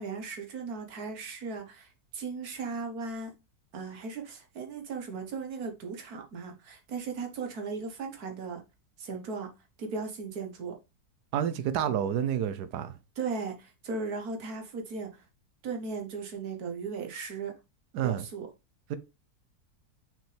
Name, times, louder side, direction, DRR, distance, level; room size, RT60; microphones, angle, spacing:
voice 1, 0.0-3.3 3.7-8.6 9.0-9.5 9.8-10.7 11.9-12.0 13.2-15.2 15.6-17.5 18.0-18.5, right 4 dB, 70° right, 1.8 m, -37 dB
voice 2, 11.3-12.9 17.9-18.2 18.9-19.0, right 9 dB, 85° right, 1.3 m, -29 dB
6.0 x 5.4 x 3.4 m
omnidirectional pair, 1.7 m